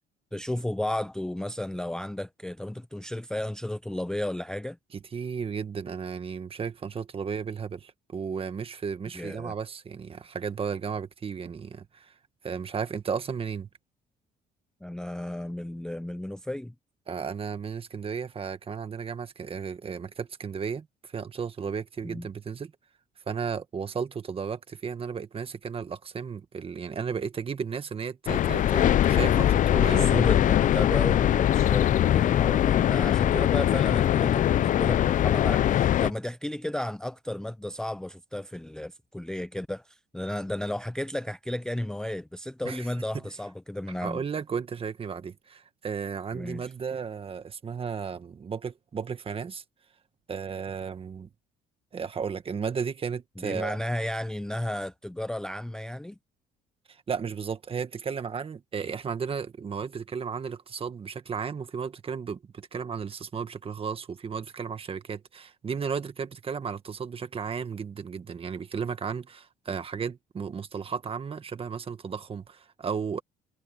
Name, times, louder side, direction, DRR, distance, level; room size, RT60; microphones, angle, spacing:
voice 1, 0.3-4.8 9.1-9.5 14.8-16.7 22.0-22.3 29.9-44.2 46.3-46.7 53.4-56.2, left 1 dB, 5° left, 0.5 m, -33 dB
voice 2, 4.9-12.1 12.4-13.7 17.1-22.7 23.3-30.1 42.6-42.9 44.0-49.6 50.3-51.3 51.9-53.8 56.9-73.2, right 6 dB, 35° right, 1.6 m, -34 dB
sound 1, 28.3-36.1, left 11 dB, 50° left, 0.6 m, -22 dB
cardioid pair, 110°, 17 cm